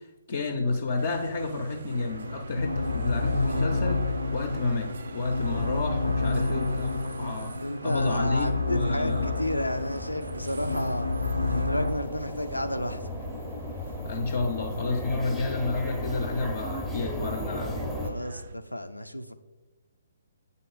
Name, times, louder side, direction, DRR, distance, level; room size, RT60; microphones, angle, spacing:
voice 1, 0.3-4.0 4.3-7.5 7.8-9.3 14.0-17.8, left 3 dB, 45° left, 3 dB, 0.6 m, -30 dB
sound 1, 1.0-18.6, right 3 dB, 55° right, 0.3 m, -44 dB
sound 2, 1.9-11.9, left 2 dB, 90° right, 0.8 m, -29 dB
voice 2, 7.6-11.1 11.5-13.0 18.0-19.3, left 1 dB, 90° left, 9 dB, 0.5 m, -32 dB
sound 3, 9.1-18.1, left 1 dB, ahead, 0.7 m, -36 dB
8.2 x 3.7 x 3.9 m, 1.1 s
figure-of-eight pair, 130°, 0 cm